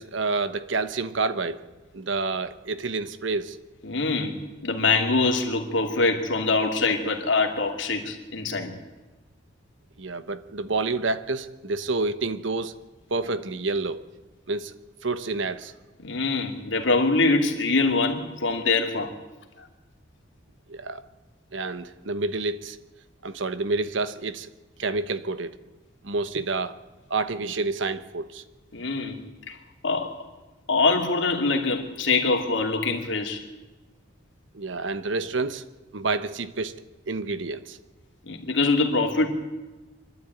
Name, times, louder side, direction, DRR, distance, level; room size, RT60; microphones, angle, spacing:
voice 1, 0.0-1.7 1.9-3.6 10.0-12.7 13.1-14.0 14.5-14.7 15.0-15.7 20.7-21.0 21.5-22.8 23.2-24.5 24.8-25.6 26.0-26.7 27.1-28.4 34.5-35.6 35.9-36.8 37.1-37.8, right 3 dB, 75° right, 1.1 m, -28 dB
voice 2, 3.8-4.4 4.6-8.8 16.0-19.1 28.7-29.2 29.5-29.6 29.8-30.2 30.7-33.4 38.3-39.3, left 3 dB, 75° left, 2.7 m, -24 dB
25.0 x 12.0 x 9.2 m
head